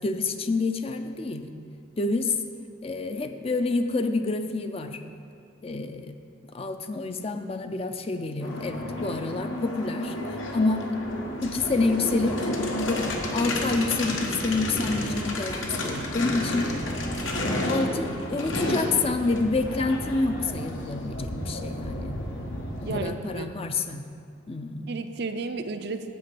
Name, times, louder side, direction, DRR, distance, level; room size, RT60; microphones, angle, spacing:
voice 1, 0.0-1.5 2.0-2.4 2.8-5.0 5.6-6.1 6.5-10.2 10.5-10.9 11.4-12.5 12.9-16.7 17.4-22.2 22.9-24.0 24.5-24.9, left 3 dB, 30° left, 7 dB, 0.4 m, -28 dB
sound 1, 8.4-23.0, left 1 dB, 80° left, 1.2 m, -31 dB
voice 2, 22.8-23.5 24.9-26.1, right 3 dB, 55° right, 7 dB, 0.5 m, -32 dB
9.3 x 5.3 x 7.5 m, 2.4 s
head